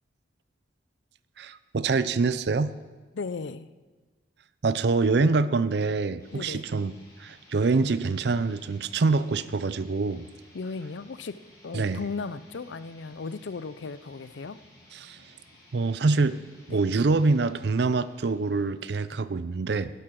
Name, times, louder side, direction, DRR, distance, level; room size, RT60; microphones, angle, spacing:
voice 1, 1.4-2.7 4.6-6.9 7.2-10.3 11.7-12.0 14.9-15.2 15.7-16.4 16.7-19.9, right 4 dB, 60° right, 15 dB, 0.5 m, -25 dB
voice 2, 3.1-3.7 6.3-6.7 10.5-14.6 16.7-16.8, left 4 dB, 75° left, 15 dB, 0.5 m, -36 dB
sound 1, 6.2-19.0, left 1 dB, 20° left, 4.1 m, -56 dB
11.5 x 10.5 x 5.9 m, 1.3 s
head